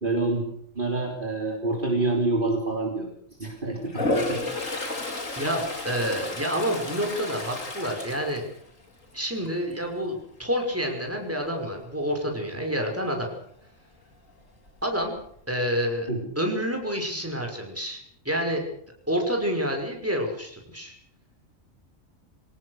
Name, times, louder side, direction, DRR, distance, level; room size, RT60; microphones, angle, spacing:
voice 1, 0.0-0.4 0.8-3.1 3.4-4.4 16.1-16.3, right 2 dB, 40° right, 1 dB, 3.8 m, -27 dB
Toilet flush, 3.9-9.1 9.5-9.8 14.3-14.4 14.7-15.4, left 2 dB, 80° left, 4.0 m, -32 dB
voice 2, 5.4-8.5 9.1-13.3 14.8-15.1 15.5-16.1 16.4-18.6 19.1-20.9, equal, 10° right, 2 dB, 5.7 m, -28 dB
25.0 x 18.5 x 6.6 m, 0.67 s
omnidirectional pair, 1.3 m